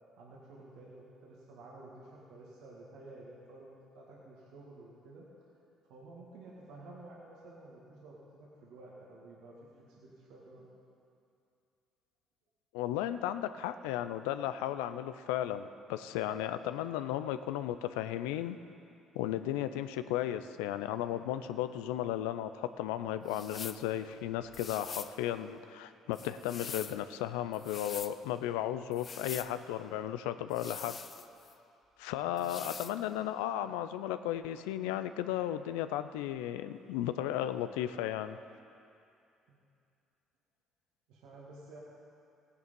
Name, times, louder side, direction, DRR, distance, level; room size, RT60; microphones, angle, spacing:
voice 1, 0.2-5.3 5.9-10.7 32.2-32.5 39.5-39.6 41.1-41.8, right 2 dB, 80° right, -4 dB, 2.0 m, -52 dB
voice 2, 12.7-18.6 19.1-31.0 32.0-38.4, left 12 dB, 85° left, 11 dB, 0.4 m, -35 dB
sound 1, 23.3-23.8 24.5-25.2 26.1-27.0 27.5-28.1 28.9-29.5 30.5-31.5 32.4-33.0, left 6 dB, 40° left, 0.6 m, -44 dB
16.0 x 9.6 x 5.3 m, 2.6 s
supercardioid pair, 70°, 0 cm